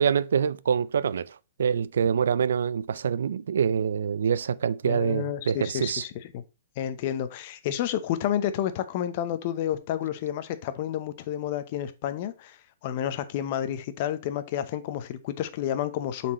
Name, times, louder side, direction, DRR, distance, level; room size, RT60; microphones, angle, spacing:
voice 1, 0.0-6.0, right 7 dB, 80° right, 0.3 m, -25 dB
voice 2, 4.8-6.4 6.8-16.3, left 11 dB, 45° left, 0.7 m, -30 dB
7.3 x 4.3 x 3.0 m
hypercardioid pair, 150°, 0 cm